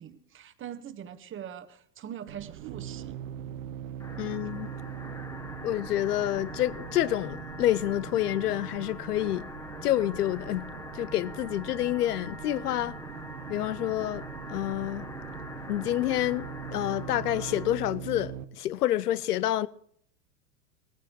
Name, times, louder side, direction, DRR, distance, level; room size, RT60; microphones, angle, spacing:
voice 1, 0.0-3.2, right 9 dB, 25° right, 1.4 m, -42 dB
sound 1, 2.3-18.5, right 10 dB, 55° right, 1.1 m, -42 dB
sound 2, 4.0-17.7, left 2 dB, 5° left, 1.3 m, -43 dB
voice 2, 4.2-4.7 5.6-9.5 9.8-10.7 10.9-13.0 13.5-15.1 15.7-19.7, left 13 dB, 70° left, 0.8 m, -28 dB
19.5 x 15.0 x 3.1 m
hypercardioid pair, 95°, 48 cm